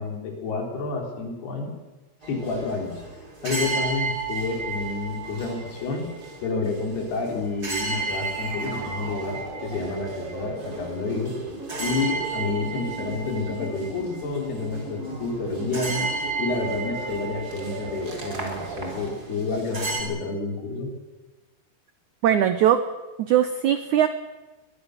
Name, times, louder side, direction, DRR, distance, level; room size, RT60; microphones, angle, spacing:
voice 1, 0.0-1.7 2.3-3.0 3.4-6.1 6.4-11.3 11.8-16.0 16.4-20.9, left 3 dB, 70° left, 2 dB, 5.6 m, -29 dB
sound 1, 2.2-20.0, right 3 dB, 25° right, 3.7 m, -34 dB
sound 2, 7.9-19.1, right 2 dB, 55° right, 6.3 m, -37 dB
voice 2, 22.2-22.8 23.2-24.1, right 10 dB, 80° right, 10 dB, 1.7 m, -20 dB
23.0 x 21.5 x 6.6 m, 1.2 s
omnidirectional pair, 4.7 m